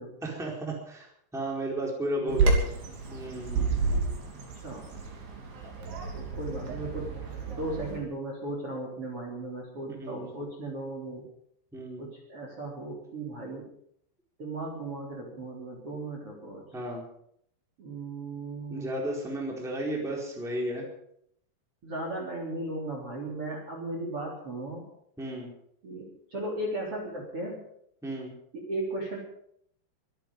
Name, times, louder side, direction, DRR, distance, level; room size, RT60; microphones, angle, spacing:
voice 1, 0.2-2.6 3.1-3.7 9.9-10.3 11.7-12.0 16.7-17.0 18.7-20.9 25.2-25.5 28.0-28.3, right 1 dB, ahead, -1 dB, 3.7 m, -33 dB
Bird vocalization bird call bird song, 2.3-8.0, right 3 dB, 55° right, 4.8 m, -30 dB
voice 2, 6.1-7.1 7.5-11.2 12.0-13.7 14.4-16.6 17.8-19.0 21.8-24.9 25.8-27.6 28.5-29.2, right 2 dB, 30° right, -1 dB, 3.9 m, -36 dB
23.5 x 10.5 x 5.5 m, 0.70 s
omnidirectional pair, 5.4 m